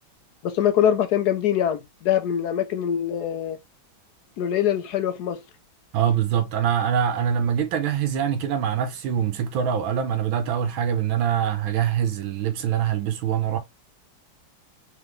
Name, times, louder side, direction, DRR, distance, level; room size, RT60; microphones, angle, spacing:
voice 1, 0.4-3.6 4.4-5.4, left 10 dB, 65° left, 1.1 m, -23 dB
voice 2, 5.9-13.6, right 8 dB, 85° right, 1.5 m, -24 dB
3.9 x 3.7 x 3.1 m
omnidirectional pair, 2.2 m